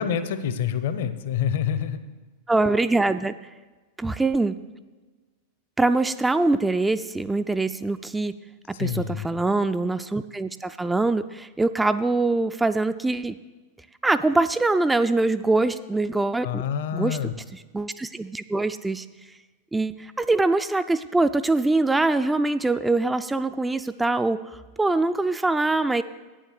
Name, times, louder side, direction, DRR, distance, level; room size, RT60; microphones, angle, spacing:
voice 1, 0.0-2.0 8.7-9.3 16.4-17.3, left 8 dB, 55° left, 11 dB, 0.7 m, -27 dB
voice 2, 2.5-3.3 4.0-4.6 5.8-8.3 8.7-13.4 14.0-16.6 16.9-17.2 17.5-19.1 19.7-26.0, right 2 dB, 10° right, 11 dB, 0.3 m, -23 dB
9.1 x 7.6 x 6.5 m, 1.3 s
figure-of-eight pair, 90°, 0 cm